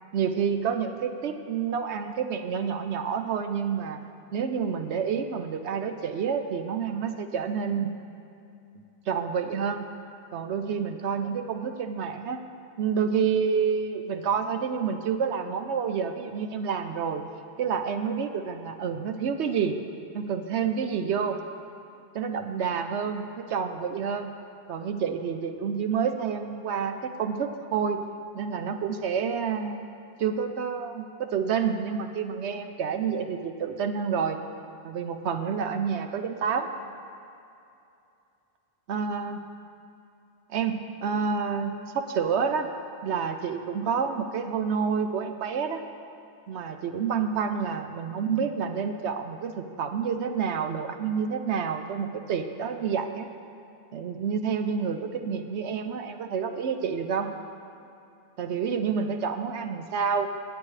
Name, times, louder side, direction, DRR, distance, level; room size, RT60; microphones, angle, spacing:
voice 1, 0.1-4.0 4.3-8.0 8.7-9.9 10.3-12.4 12.8-17.2 17.6-19.8 20.1-21.4 22.1-23.2 23.5-24.3 24.7-28.0 28.3-29.9 30.2-34.4 34.8-36.7 38.9-39.4 40.5-42.7 43.0-45.8 46.5-53.3 53.9-57.3 58.4-60.3, right 6 dB, 80° right, 7 dB, 0.9 m, -28 dB
21.0 x 8.2 x 3.2 m, 2.7 s
omnidirectional pair, 1.1 m